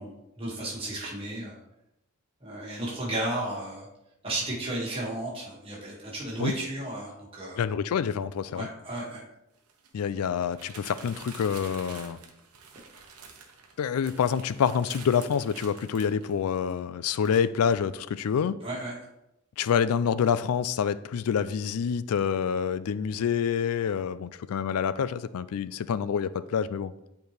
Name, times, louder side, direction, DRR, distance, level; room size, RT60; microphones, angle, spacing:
voice 1, 0.0-1.6 2.4-3.9 4.2-7.6 8.6-9.2 18.6-19.0, right 1 dB, 25° right, -4 dB, 1.9 m, -33 dB
voice 2, 7.6-8.7 9.9-12.2 13.8-18.6 19.6-26.9, left 7 dB, 75° left, 16 dB, 0.3 m, -27 dB
sound 1, 8.0-8.1 9.6-16.8 17.2-17.4, right 5 dB, 85° right, 1.0 m, -48 dB
8.1 x 4.5 x 3.2 m, 0.85 s
head